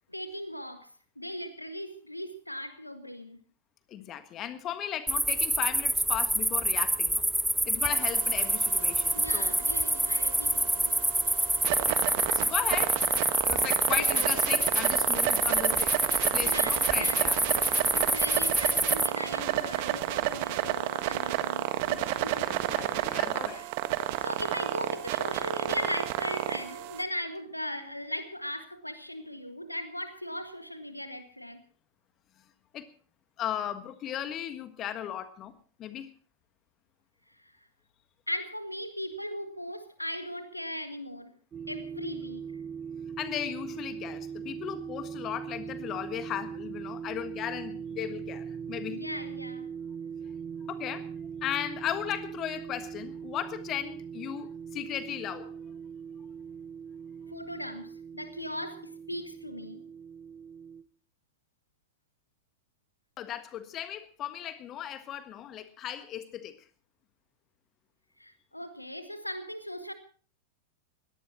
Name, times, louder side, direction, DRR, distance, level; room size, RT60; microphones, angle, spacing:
voice 1, 0.1-0.9 1.1-3.4 9.1-11.0 14.0-14.4 16.3-17.6 17.9-23.7 24.2-31.6 37.4-37.5 38.3-41.3 41.7-42.4 48.9-49.7 57.3-59.8 68.2-69.9, equal, 85° left, 9 dB, 1.8 m, -38 dB
voice 2, 3.9-7.2 7.6-9.6 11.8-12.0 12.3-17.4 22.4-23.6 32.7-32.9 33.4-35.5 35.8-36.1 43.2-49.0 50.7-51.1 51.4-55.6 63.2-66.5, left 10 dB, 30° left, 10 dB, 1.5 m, -36 dB
sound 1, 5.1-19.1, right 1 dB, 5° right, 0.7 m, -27 dB
sound 2, 7.8-27.0, right 14 dB, 50° right, 1.5 m, -31 dB
sound 3, 41.5-60.8, right 7 dB, 25° right, 1.2 m, -40 dB
22.0 x 18.0 x 2.9 m, 0.39 s
figure-of-eight pair, 90°, 0 cm